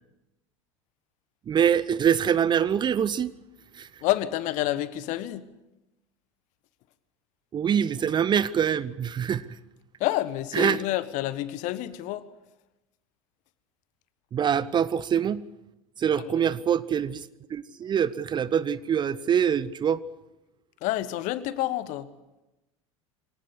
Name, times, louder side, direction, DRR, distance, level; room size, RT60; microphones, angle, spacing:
voice 1, 1.5-3.3 3.7-3.9 7.5-9.5 10.5-10.8 14.3-15.4 16.0-20.0, right 8 dB, 25° right, 18 dB, 0.8 m, -24 dB
voice 2, 4.0-5.5 10.0-12.2 16.2-16.3 20.8-22.1, left 15 dB, 45° left, 15 dB, 1.4 m, -28 dB
24.0 x 18.5 x 8.4 m, 0.97 s
figure-of-eight pair, 75°, 17 cm